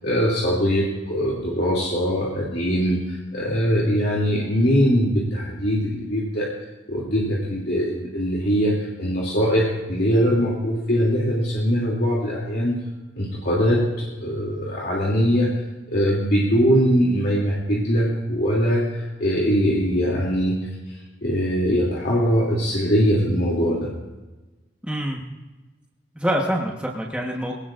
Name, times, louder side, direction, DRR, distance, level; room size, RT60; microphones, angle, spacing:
voice 1, 0.0-6.5 6.9-12.8 13.2-15.5 15.9-20.6 21.2-23.9, equal, 55° left, -5 dB, 2.7 m, -22 dB
voice 2, 24.8-25.2 26.1-27.6, equal, 5° right, -2 dB, 1.2 m, -25 dB
21.5 x 18.0 x 2.5 m, 1.1 s
head